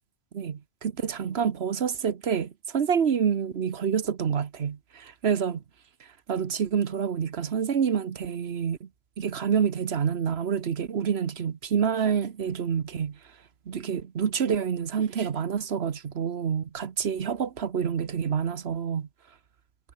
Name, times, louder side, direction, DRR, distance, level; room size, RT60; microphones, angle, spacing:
voice 1, 0.3-5.6 6.0-8.9 9.2-13.2 13.7-19.1, right 7 dB, 50° right, 1.2 m, -27 dB
omnidirectional pair, 1.4 m